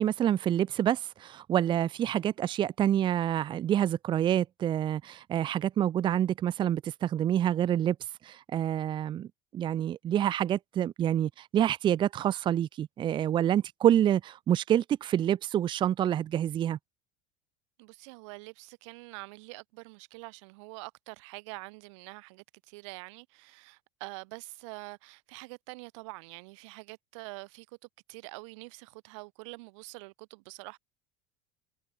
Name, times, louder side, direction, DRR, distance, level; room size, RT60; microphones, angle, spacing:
voice 1, 0.0-8.0 8.2-9.3 9.5-16.8, right 10 dB, 30° right, 0.6 m, -27 dB
voice 2, 17.8-27.7 28.1-30.8, right 28 dB, 80° right, 1.6 m, -45 dB
supercardioid pair, 130°, 15 cm